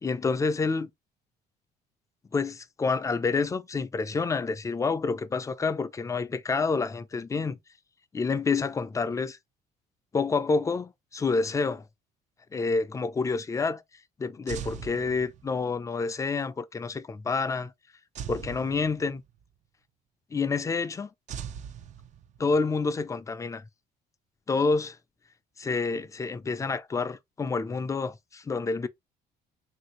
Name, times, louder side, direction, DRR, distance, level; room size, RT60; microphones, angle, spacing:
voice 1, 0.0-0.9 2.3-7.6 8.1-9.4 10.1-11.8 12.5-13.8 14.2-17.7 18.3-19.2 20.3-21.1 22.4-23.6 24.5-25.0 25.6-28.9, left 4 dB, 20° left, 0.4 m, -28 dB
sound 1, 14.5-15.7 18.1-19.4 21.3-22.6, right 8 dB, 45° right, 0.4 m, -40 dB
3.1 x 2.6 x 2.9 m
cardioid pair, 110°, 17 cm